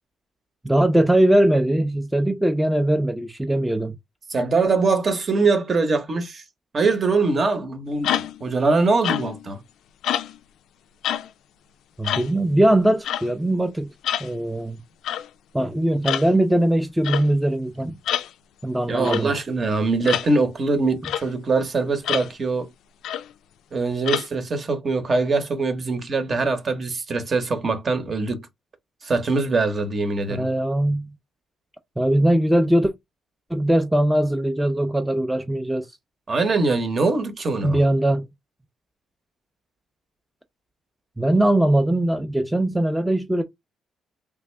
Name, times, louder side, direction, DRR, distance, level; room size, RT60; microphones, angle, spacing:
voice 1, 0.6-3.9 12.0-13.9 14.2-14.8 15.5-18.0 18.6-19.3 30.3-31.1 32.0-32.9 33.5-35.9 37.6-38.3 41.2-43.4, right 1 dB, 5° right, 0.5 m, -20 dB
voice 2, 4.3-6.4 6.7-9.6 18.9-22.7 23.7-28.5 29.0-30.5 36.3-37.8, right 3 dB, 40° right, 1.0 m, -22 dB
sound 1, 8.0-8.4 9.0-9.5 10.0-10.4 11.0-11.3 12.0-12.3 13.0-13.3 14.0-14.3 15.0-15.3 16.0-16.3 17.0-17.3 18.1-18.3 19.0-19.3 20.0-20.3 21.0-21.3 22.0-22.3 23.0-23.3 24.1-24.3, left 11 dB, 80° left, 0.3 m, -26 dB
3.5 x 2.4 x 3.3 m
cardioid pair, 90°, 0 cm